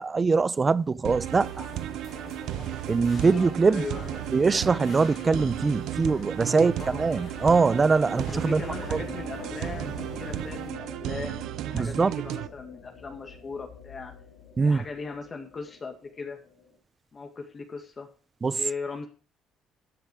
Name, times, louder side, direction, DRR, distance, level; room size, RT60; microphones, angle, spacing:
voice 1, 0.0-1.5 2.9-3.8 4.3-6.7 7.0-8.6 8.9-9.0 11.7-12.1 14.6-14.8 18.4-18.6, right 4 dB, 30° right, 0.6 m, -22 dB
sound 1, 1.0-12.5, right 14 dB, 75° right, 0.5 m, -34 dB
sound 2, 1.2-10.7, left 5 dB, 55° left, 3.7 m, -44 dB
voice 2, 3.7-4.2 6.5-7.1 8.3-14.1 14.6-16.4 17.1-18.1 18.5-19.1, left 4 dB, 35° left, 2.1 m, -38 dB
sound 3, 8.6-16.7, left 5 dB, 70° left, 5.4 m, -45 dB
13.0 x 6.8 x 4.9 m
supercardioid pair, 70°, 0 cm